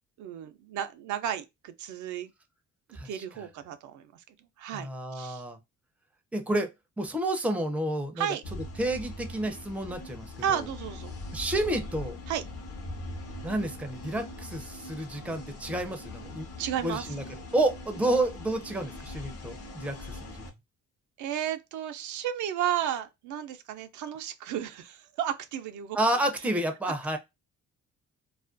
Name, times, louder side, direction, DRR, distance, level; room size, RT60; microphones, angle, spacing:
voice 1, 0.2-2.3 3.0-5.4 8.2-8.4 10.4-11.1 12.3-12.4 16.6-17.1 21.2-26.0, right 10 dB, 75° right, 0.4 m, -33 dB
voice 2, 2.9-3.2 4.7-5.6 6.3-6.7 7.0-8.3 8.8-10.6 11.3-12.2 13.4-16.5 16.8-17.2 17.5-20.4 25.9-27.2, right 1 dB, 5° right, 0.4 m, -30 dB
sound 1, 8.4-20.5, left 2 dB, 50° left, 0.7 m, -41 dB
2.4 x 2.1 x 2.4 m
cardioid pair, 90°, 30 cm